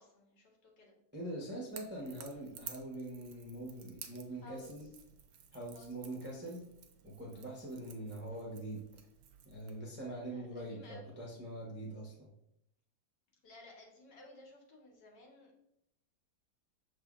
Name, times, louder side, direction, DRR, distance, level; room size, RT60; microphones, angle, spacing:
voice 1, 0.0-1.0 4.4-4.9 5.7-6.5 7.3-7.6 10.3-11.2 13.4-15.6, left 2 dB, 65° left, 0 dB, 1.6 m, -57 dB
voice 2, 1.1-4.9 5.5-6.7 7.0-8.9 9.4-12.3, right 1 dB, 15° right, -4 dB, 0.4 m, -43 dB
Crackle / Crack, 1.7-9.8, right 8 dB, 70° right, 0.9 m, -54 dB
6.4 x 3.4 x 2.4 m, 0.77 s
omnidirectional pair, 2.0 m